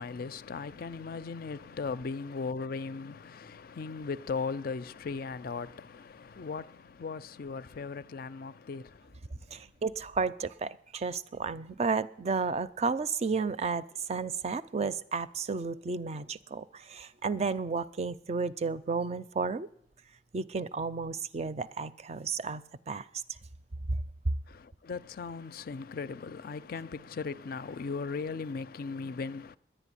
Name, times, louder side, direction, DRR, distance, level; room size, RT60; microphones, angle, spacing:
voice 1, 0.0-9.3 24.5-29.6, left 4 dB, 55° left, 0.4 m, -38 dB
voice 2, 9.5-19.7 20.3-23.1 23.9-24.0, right 4 dB, 40° right, 0.5 m, -32 dB
10.5 x 10.0 x 9.8 m
head